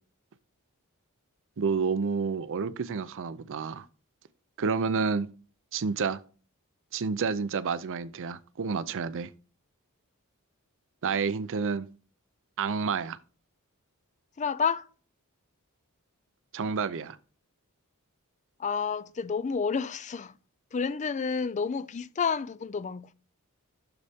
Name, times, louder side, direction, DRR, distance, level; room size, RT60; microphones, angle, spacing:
voice 1, 1.6-3.9 4.6-5.3 5.7-6.2 6.9-9.3 11.0-11.9 12.6-13.2 16.5-17.2, right 5 dB, 60° right, 0.5 m, -29 dB
voice 2, 14.4-14.8 18.6-20.3 20.7-23.1, left 6 dB, 30° left, 0.4 m, -30 dB
11.5 x 4.1 x 3.5 m
head